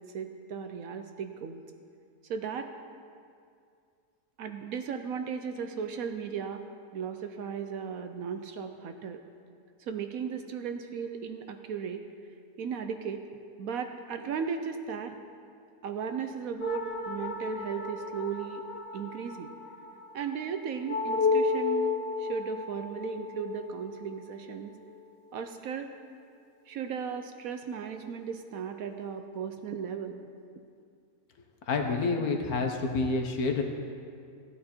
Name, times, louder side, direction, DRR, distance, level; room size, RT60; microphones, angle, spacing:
voice 1, 0.0-1.6 2.3-2.7 4.4-6.6 6.9-9.2 9.8-12.0 12.6-13.2 13.6-15.2 15.8-18.6 18.9-19.5 20.1-24.7 25.3-25.9 26.7-30.2, right 6 dB, 65° right, 7 dB, 1.0 m, -36 dB
sound 1, 16.6-25.4, left 4 dB, 50° left, 0.8 m, -33 dB
voice 2, 31.7-33.6, left 3 dB, 65° left, 4 dB, 1.5 m, -28 dB
15.0 x 9.4 x 4.4 m, 2.3 s
omnidirectional pair, 1.7 m